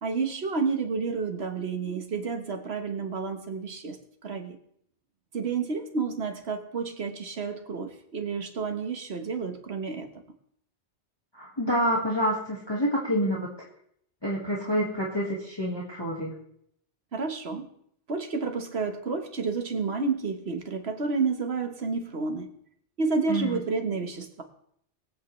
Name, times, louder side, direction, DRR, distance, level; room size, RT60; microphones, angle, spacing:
voice 1, 0.0-4.6 5.3-10.1 17.1-17.7 18.1-22.5 23.0-24.4, right 4 dB, 65° right, 6 dB, 1.5 m, -30 dB
voice 2, 11.3-13.5 14.2-16.4 23.3-23.6, equal, 20° left, -4 dB, 1.9 m, -27 dB
22.5 x 8.4 x 3.2 m, 0.69 s
omnidirectional pair, 1.2 m